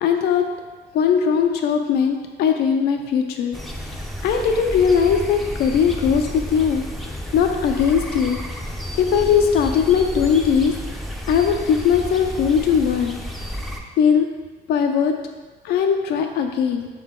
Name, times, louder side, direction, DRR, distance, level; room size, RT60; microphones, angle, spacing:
voice 1, 0.0-0.4 0.9-3.6 4.2-6.8 7.3-8.4 9.0-10.7 11.3-13.2 14.0-14.3 14.7-15.1 15.6-16.9, left 7 dB, 70° left, 4 dB, 0.4 m, -19 dB
sound 1, 3.5-13.8, equal, ahead, 0.5 m, -31 dB
3.9 x 3.8 x 3.6 m, 1.4 s
cardioid pair, 110°, 17 cm